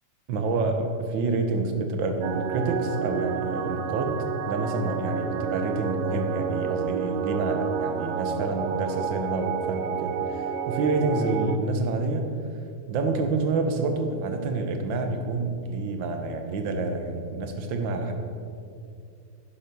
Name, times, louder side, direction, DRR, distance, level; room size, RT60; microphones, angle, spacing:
voice 1, 0.3-12.3 12.9-18.1, right 3 dB, 55° right, 5 dB, 1.4 m, -28 dB
sound 1, 2.2-11.6, right 8 dB, 75° right, 1.8 m, -30 dB
10.5 x 10.5 x 6.1 m, 2.4 s
omnidirectional pair, 3.3 m